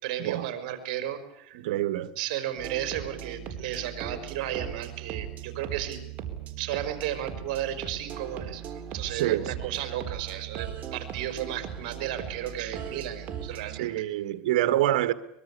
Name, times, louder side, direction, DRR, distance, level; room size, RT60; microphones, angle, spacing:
voice 1, 0.0-1.7 2.2-6.0 6.6-8.6 8.9-14.0, right 11 dB, 70° right, 5.0 m, -34 dB
voice 2, 1.5-2.1 9.1-9.7 13.8-15.1, right 13 dB, 85° right, 1.7 m, -26 dB
sound 1, 2.5-13.8, right 9 dB, 40° right, 4.0 m, -39 dB
23.5 x 22.0 x 8.4 m
supercardioid pair, 120°, 4 cm